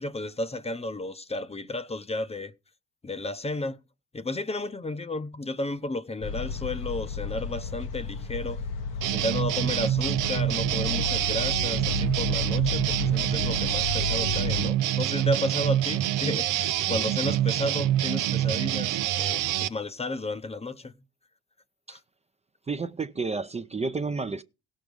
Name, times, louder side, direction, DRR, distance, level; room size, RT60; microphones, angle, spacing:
voice 1, 0.0-2.5 3.0-3.8 4.1-8.6 9.1-20.9 21.9-22.0, left 2 dB, 20° left, 0.7 m, -33 dB
sound 1, 6.2-14.7, left 4 dB, 85° left, 1.2 m, -32 dB
sound 2, 9.0-19.7, right 13 dB, 90° right, 0.7 m, -26 dB
voice 2, 22.7-24.4, right 4 dB, 20° right, 0.6 m, -31 dB
16.5 x 6.4 x 5.2 m
cardioid pair, 90°, 30 cm